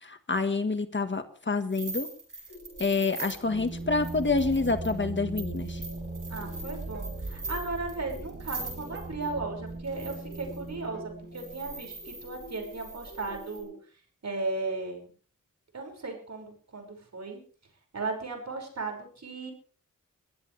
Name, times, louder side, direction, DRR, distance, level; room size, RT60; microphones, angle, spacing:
voice 1, 0.0-2.1 2.8-5.8, left 3 dB, 35° left, 8 dB, 1.7 m, -28 dB
sound 1, 1.7-9.3 9.8-10.7 11.3-13.6, right 3 dB, 75° right, 7.7 m, -42 dB
sound 2, 2.5-13.8, left 2 dB, 55° left, 7.7 m, -49 dB
sound 3, 3.3-11.9, right 2 dB, 30° right, 2.3 m, -39 dB
voice 2, 6.3-13.7 14.2-15.1 15.7-17.4 17.9-19.5, right 3 dB, 55° right, 2 dB, 6.1 m, -36 dB
22.0 x 16.0 x 3.4 m, 0.43 s
wide cardioid pair, 105°, 32 cm